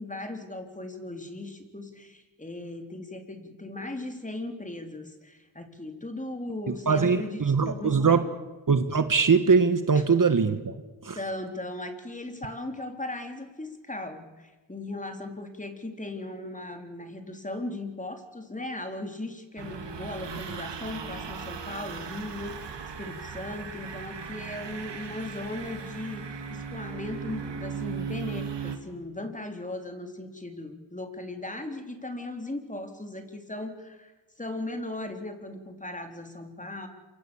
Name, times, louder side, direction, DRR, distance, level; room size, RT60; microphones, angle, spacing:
voice 1, 0.0-8.4 11.1-22.7 23.0-36.9, left 2 dB, 15° left, 5 dB, 4.1 m, -38 dB
voice 2, 6.7-8.3 8.7-11.2, right 5 dB, 45° right, 10 dB, 1.7 m, -22 dB
sound 1, 19.6-28.8, right 6 dB, 70° right, 2.9 m, -37 dB
27.0 x 25.0 x 7.3 m, 1.2 s
cardioid pair, 70°, 44 cm